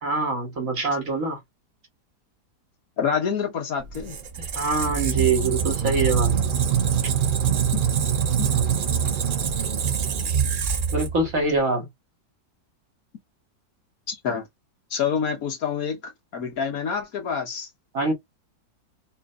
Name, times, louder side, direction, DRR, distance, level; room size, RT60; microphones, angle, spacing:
voice 1, 0.0-1.4 4.5-6.4 10.9-11.9 17.9-18.1, right 3 dB, 55° right, 1.8 m, -24 dB
voice 2, 3.0-4.2 7.7-7.8 8.4-8.5 14.1-14.5 14.9-17.7, left 7 dB, 60° left, 1.5 m, -27 dB
Squeak, 3.8-11.6, right 7 dB, 80° right, 0.4 m, -24 dB
4.3 x 2.6 x 2.4 m
omnidirectional pair, 1.8 m